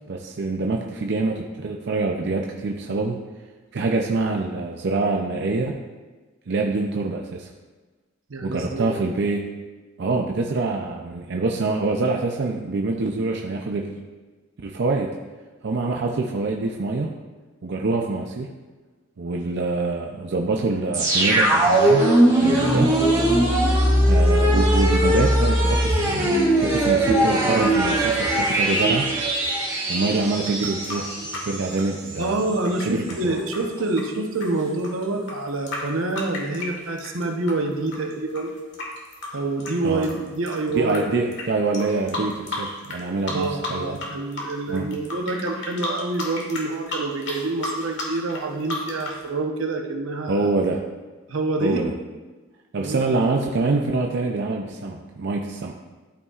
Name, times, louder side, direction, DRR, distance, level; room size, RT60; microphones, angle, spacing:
voice 1, 0.1-3.2 3.7-5.7 6.5-7.5 8.4-9.4 10.0-14.0 14.6-15.1 15.6-17.1 17.6-18.5 19.2-23.0 24.1-29.1 29.9-31.1 31.4-32.4 32.8-33.4 39.8-40.1 40.7-44.0 44.7-44.9 50.3-50.9 51.6-51.9 52.7-55.7, right 3 dB, 60° right, 1 dB, 0.5 m, -25 dB
voice 2, 8.3-8.9 32.2-38.5 39.3-41.0 43.3-50.5 51.3-51.8 52.8-53.0, right 2 dB, 80° right, 3 dB, 0.9 m, -27 dB
sound 1, 20.9-31.7 32.1-32.2, right 1 dB, 20° right, 1.8 m, -20 dB
sound 2, 30.4-37.5 37.9-41.0 41.3-41.4 41.7-43.0 43.3-44.1 44.3-49.2, left 2 dB, 60° left, 1.6 m, -33 dB
12.5 x 5.4 x 2.4 m, 1.3 s
head